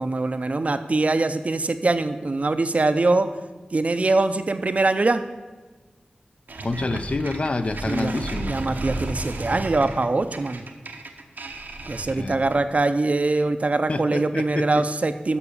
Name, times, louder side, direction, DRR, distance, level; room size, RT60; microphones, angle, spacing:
voice 1, 0.0-3.3 3.7-5.2 7.8-8.1 8.4-10.6 11.9-15.4, right 2 dB, 50° right, 10 dB, 0.5 m, -23 dB
sound 1, 6.5-12.7, right 2 dB, 85° right, 0.8 m, -33 dB
voice 2, 6.6-8.6 12.1-12.4 13.9-14.9, left 2 dB, 45° left, 10 dB, 0.5 m, -28 dB
6.9 x 6.2 x 6.8 m, 1.3 s
wide cardioid pair, 85°, 3 cm